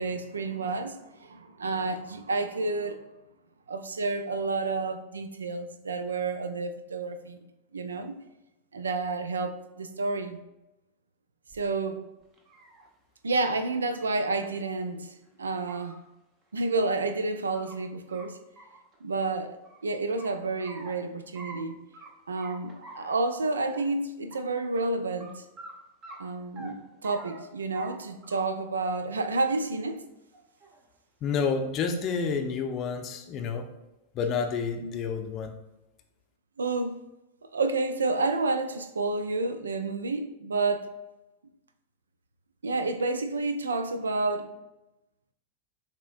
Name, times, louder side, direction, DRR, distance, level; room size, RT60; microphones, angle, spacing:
voice 1, 0.0-3.0 3.7-7.4 7.7-8.2 8.7-10.4 11.5-12.0 13.2-15.9 16.5-18.4 19.0-19.6 19.8-21.8 22.3-25.4 26.2-30.0 34.8-34.9 36.6-37.0 37.4-40.9 42.6-44.5, right 3 dB, 70° right, 0.4 m, -30 dB
sound 1, 11.5-11.6 12.2-12.9 13.9-14.1 14.4-14.5 14.9-15.0 15.5-16.0 17.1-17.8 18.1-18.3 18.6-19.8 20.2-21.0 21.4-21.6 21.9-22.1 22.4-23.2 23.5-23.9 24.3-24.4 24.7-24.8 25.2-25.3 25.6-25.7 26.0-26.7 27.0-27.4 27.8-27.9 28.2-28.7 29.0-29.5 30.3-30.8, right 2 dB, 35° right, 0.9 m, -47 dB
voice 2, 31.2-33.7 34.1-35.5, left 5 dB, 35° left, 0.5 m, -29 dB
6.6 x 2.9 x 2.5 m
figure-of-eight pair, 90°, 0 cm